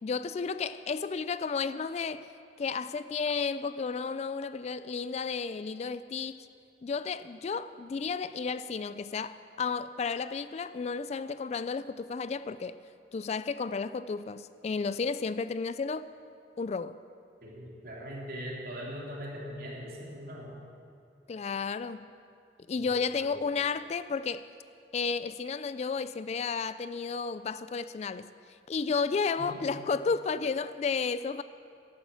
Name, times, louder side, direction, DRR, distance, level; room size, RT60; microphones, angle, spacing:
voice 1, 0.0-2.3 2.6-6.4 6.8-12.8 13.1-16.1 16.6-17.0 21.3-22.1 22.7-24.5 24.9-28.3 28.7-31.4, left 5 dB, 40° left, 14 dB, 0.3 m, -32 dB
voice 2, 17.4-20.5 22.8-22.9 23.2-23.4 29.4-29.6, equal, 55° right, -3 dB, 3.2 m, -41 dB
12.0 x 11.5 x 7.3 m, 2.4 s
head